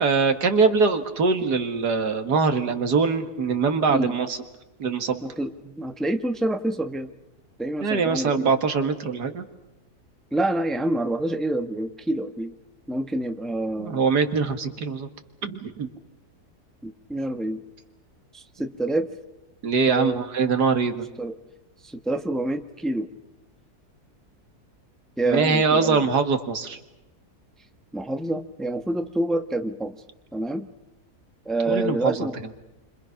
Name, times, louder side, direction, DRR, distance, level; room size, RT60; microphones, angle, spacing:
voice 1, 0.0-4.4 4.8-5.2 7.8-9.4 13.8-15.1 15.4-15.9 19.6-21.1 25.2-26.8 31.7-32.3, right 4 dB, 85° right, 7 dB, 2.3 m, -23 dB
voice 2, 5.2-7.1 7.6-8.5 10.3-12.5 12.9-14.0 16.8-17.6 18.3-19.1 19.9-20.2 21.2-21.4 21.8-23.1 25.2-26.0 27.9-30.0 30.3-30.7 31.4-32.4, right 1 dB, ahead, 6 dB, 1.1 m, -27 dB
29.5 x 25.5 x 5.9 m, 1.0 s
omnidirectional pair, 1.7 m